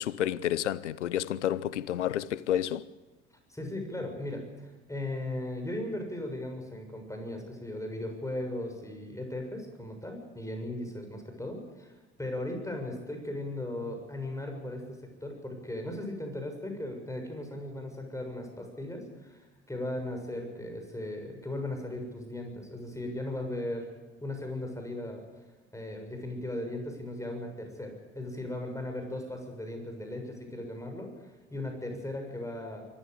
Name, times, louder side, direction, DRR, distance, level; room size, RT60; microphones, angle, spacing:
voice 1, 0.0-2.9, left 11 dB, 85° left, 0.7 m, -30 dB
voice 2, 3.5-11.9 12.2-23.9 24.2-25.2 25.7-32.8, left 1 dB, 10° left, 6.9 m, -37 dB
24.0 x 15.0 x 8.3 m
hypercardioid pair, 60°, 35 cm